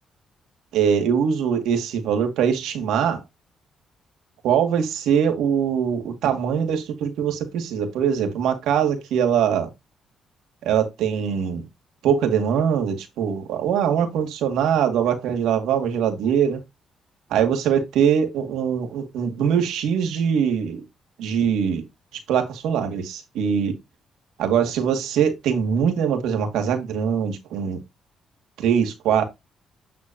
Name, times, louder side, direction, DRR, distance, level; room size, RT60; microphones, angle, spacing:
voice 1, 0.7-3.2 4.4-9.7 10.6-11.6 12.0-16.6 17.3-20.8 21.2-21.8 22.1-23.7 24.4-27.8 28.6-29.2, right 8 dB, 85° right, 2.2 m, -22 dB
9.6 x 4.6 x 2.8 m
cardioid pair, 90°, 0 cm